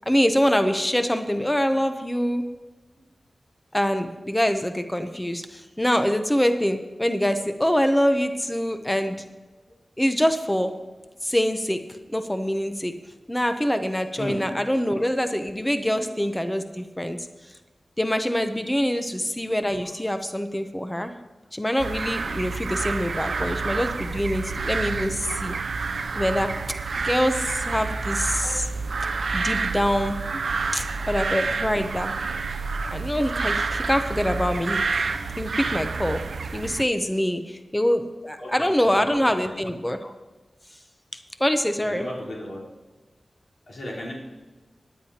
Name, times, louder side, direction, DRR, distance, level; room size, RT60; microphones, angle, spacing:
voice 1, 0.1-2.5 3.7-9.2 10.0-10.7 11.2-11.8 12.1-12.9 13.3-17.3 18.0-21.1 21.5-25.5 26.1-26.5 27.0-28.7 29.3-30.2 30.7-32.2 32.9-34.8 35.4-36.2 36.5-40.1 41.4-42.1, equal, 10° left, 8 dB, 0.7 m, -24 dB
sound 1, 21.8-36.8, right 4 dB, 85° right, 0.5 m, -28 dB
voice 2, 38.8-39.5 41.9-42.7 43.7-44.1, left 1 dB, 85° left, -6 dB, 3.9 m, -35 dB
18.5 x 9.9 x 2.9 m, 1.3 s
wide cardioid pair, 85°, 0 cm